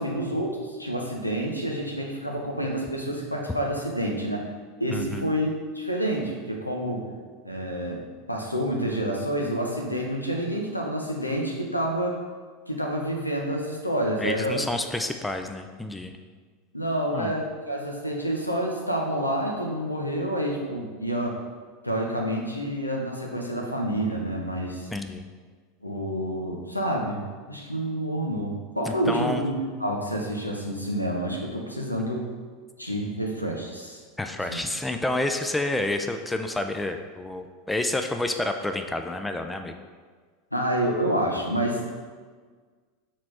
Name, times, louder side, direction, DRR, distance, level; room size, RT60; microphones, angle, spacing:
voice 1, 0.0-4.4 4.8-7.0 7.4-8.0 8.3-12.2 12.7-14.6 16.7-21.4 21.8-24.9 25.8-29.5 29.8-32.3 32.8-34.0 34.5-34.6 40.5-41.9, right 1 dB, 90° left, 0 dB, 0.9 m, -28 dB
voice 2, 4.9-5.3 14.2-16.2 17.1-17.3 24.9-25.3 28.9-29.4 34.2-39.8, left 2 dB, 10° left, 6 dB, 0.5 m, -29 dB
5.9 x 4.3 x 4.8 m, 1.5 s
figure-of-eight pair, 80°, 0 cm